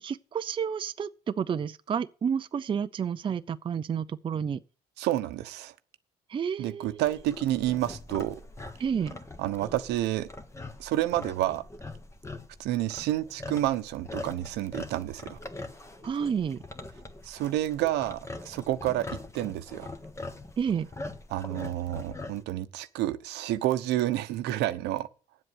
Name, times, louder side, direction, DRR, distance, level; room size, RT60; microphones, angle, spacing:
voice 1, 0.0-4.6 6.3-7.1 8.8-9.2 16.0-16.6 20.6-20.9, right 7 dB, 30° right, 0.5 m, -30 dB
voice 2, 5.0-5.7 6.6-8.4 9.4-10.3 10.8-11.6 12.6-15.4 17.2-19.1 19.3-19.9 21.3-25.1, right 14 dB, 85° right, 1.0 m, -29 dB
sound 1, 7.0-22.4, left 2 dB, 15° left, 1.4 m, -42 dB
9.3 x 7.7 x 8.0 m
cardioid pair, 110°, 17 cm